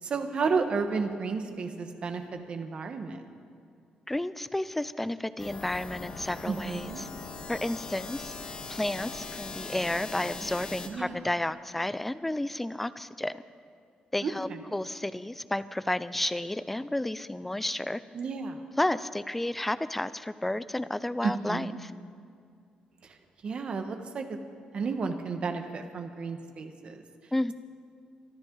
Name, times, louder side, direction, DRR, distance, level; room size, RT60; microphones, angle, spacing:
voice 1, 0.0-3.2 6.5-7.0 10.9-11.2 14.2-14.3 14.7-14.8 18.1-18.6 21.2-21.8 23.0-23.2 23.4-24.4 24.7-27.0, right 4 dB, 45° right, 6 dB, 1.2 m, -32 dB
voice 2, 4.1-7.1 7.5-8.3 8.7-13.4 14.1-18.0 18.8-21.9 27.3-27.5, left 1 dB, 5° left, 14 dB, 0.4 m, -31 dB
sound 1, 5.4-10.9, left 4 dB, 45° left, 1.5 m, -40 dB
23.5 x 13.0 x 3.9 m, 2.3 s
cardioid pair, 150°, 3 cm